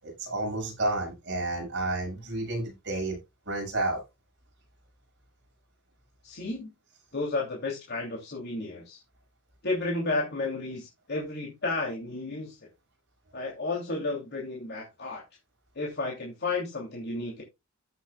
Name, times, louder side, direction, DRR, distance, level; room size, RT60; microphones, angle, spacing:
voice 1, 0.0-3.2 3.5-4.0, right 2 dB, 60° right, 1 dB, 6.5 m, -31 dB
voice 2, 6.2-6.7 7.1-9.0 9.6-12.6 13.3-15.2 15.7-17.4, left 3 dB, 50° left, -1 dB, 2.9 m, -32 dB
14.5 x 8.0 x 2.4 m, 0.24 s
head